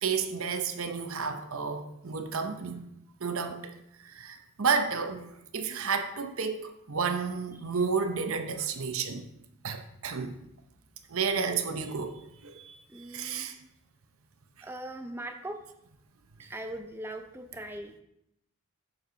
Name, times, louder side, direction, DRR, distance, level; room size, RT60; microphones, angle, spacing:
voice 1, 0.0-2.9 3.2-3.7 4.0-9.3 9.6-10.3 11.1-13.6, right 5 dB, 65° right, 0.7 m, -31 dB
voice 2, 12.9-13.5 14.6-15.6 16.4-18.0, right 1 dB, 10° right, 0.6 m, -40 dB
6.9 x 6.7 x 3.9 m
head